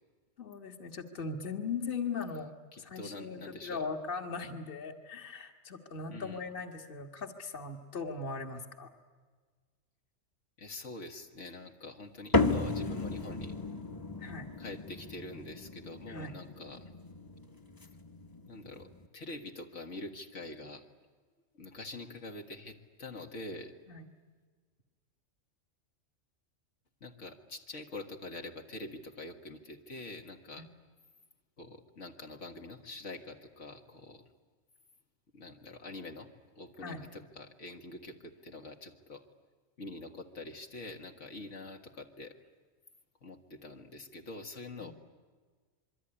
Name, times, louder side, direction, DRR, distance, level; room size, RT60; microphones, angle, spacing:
voice 1, 0.4-2.5 2.8-8.9 14.2-14.5 16.1-16.3 23.9-24.1 30.6-30.7 36.8-37.0 44.8-44.9, left 4 dB, 45° left, 5 dB, 1.8 m, -39 dB
voice 2, 2.7-3.8 6.1-6.4 10.6-13.6 14.6-16.9 18.5-20.9 21.5-23.7 27.0-30.7 31.6-34.2 35.3-39.2 39.8-42.4 43.2-44.9, left 2 dB, 75° left, 3 dB, 2.0 m, -45 dB
sound 1, 12.3-19.1, left 3 dB, 20° left, 1.0 m, -35 dB
26.5 x 23.0 x 9.9 m, 1.5 s
omnidirectional pair, 1.3 m